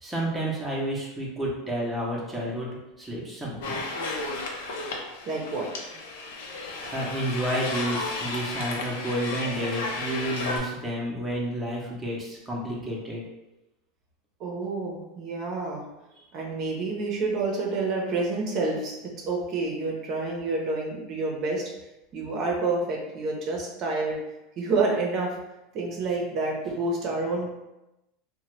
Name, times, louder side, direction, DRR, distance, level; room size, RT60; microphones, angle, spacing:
voice 1, 0.0-3.8 6.6-13.2, right 1 dB, 5° right, -5 dB, 0.7 m, -30 dB
sound 1, 3.6-10.6, left 3 dB, 85° left, 0.6 m, -33 dB
voice 2, 5.3-5.7 14.4-15.8 16.3-21.7 22.1-24.2 24.6-25.4 25.7-27.5, right 3 dB, 45° right, -1 dB, 0.7 m, -28 dB
2.9 x 2.1 x 3.1 m, 0.96 s
supercardioid pair, 130°, 0 cm